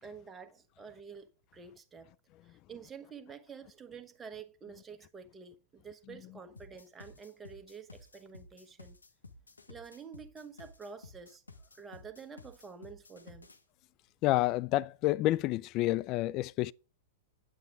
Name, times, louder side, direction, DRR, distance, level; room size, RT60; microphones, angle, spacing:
voice 1, 0.0-2.1 2.4-9.0 9.7-11.4 11.8-13.5, right 6 dB, 15° right, 1.2 m, -49 dB
sound 1, 6.6-13.6, left 3 dB, 85° left, 1.1 m, -53 dB
voice 2, 14.2-16.7, left 17 dB, 40° left, 0.3 m, -29 dB
9.2 x 8.6 x 3.6 m
figure-of-eight pair, 100°, 0 cm